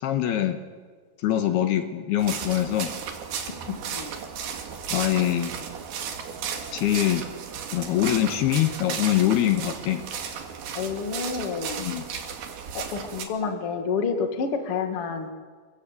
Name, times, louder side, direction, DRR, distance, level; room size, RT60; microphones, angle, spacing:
voice 1, 0.0-0.6 1.2-2.9 4.9-5.5 6.7-7.2 7.7-10.0 11.8-12.1, left 12 dB, 75° left, 7 dB, 3.3 m, -23 dB
sound 1, 2.2-13.3, right 7 dB, 70° right, 4.0 m, -34 dB
voice 2, 10.7-11.8 12.7-15.3, left 5 dB, 40° left, 5 dB, 2.7 m, -29 dB
29.5 x 22.5 x 8.4 m, 1.5 s
omnidirectional pair, 4.7 m